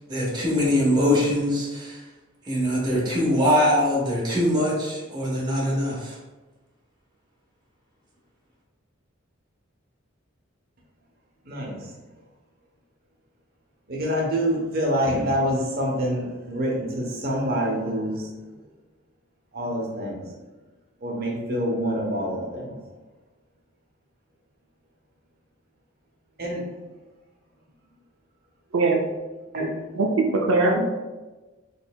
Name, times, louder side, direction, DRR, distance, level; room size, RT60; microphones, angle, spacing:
voice 1, 0.1-2.0 2.4-6.2, left 1 dB, 20° right, -4 dB, 1.0 m, -22 dB
voice 2, 11.4-11.9 13.9-18.3 19.5-20.3 21.0-22.8 26.4-26.6 29.5-29.8 30.7-30.8, equal, 50° right, -1 dB, 0.8 m, -26 dB
voice 3, 30.0-30.8, right 3 dB, 80° right, -1 dB, 0.5 m, -21 dB
4.3 x 3.2 x 2.2 m, 1.2 s
head